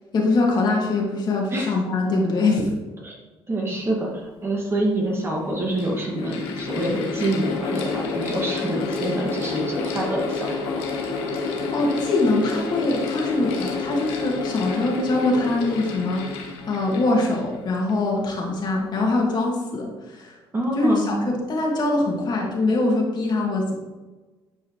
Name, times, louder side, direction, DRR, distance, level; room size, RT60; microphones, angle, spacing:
voice 1, 0.1-2.7 11.7-16.4 16.7-20.4 20.8-23.8, left 2 dB, 50° left, 0 dB, 2.2 m, -23 dB
voice 2, 3.5-10.9 20.5-21.1, right 1 dB, 25° right, -2 dB, 2.2 m, -26 dB
Mechanical fan, 4.5-4.6 5.4-18.1, left 4 dB, 80° left, 1.4 m, -29 dB
10.5 x 4.8 x 3.2 m, 1.2 s
supercardioid pair, 90°, 9 cm